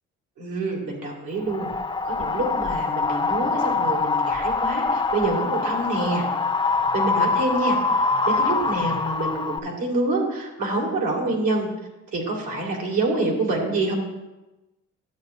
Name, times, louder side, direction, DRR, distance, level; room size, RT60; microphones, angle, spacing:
voice 1, 0.4-1.7 2.0-6.3 6.9-7.8 8.3-11.7 12.1-13.9, right 2 dB, 85° right, -2 dB, 2.6 m, -26 dB
Wind, 1.5-9.6, left 4 dB, 15° left, 0.4 m, -24 dB
12.5 x 8.1 x 2.7 m, 1.0 s
cardioid pair, 90°, 30 cm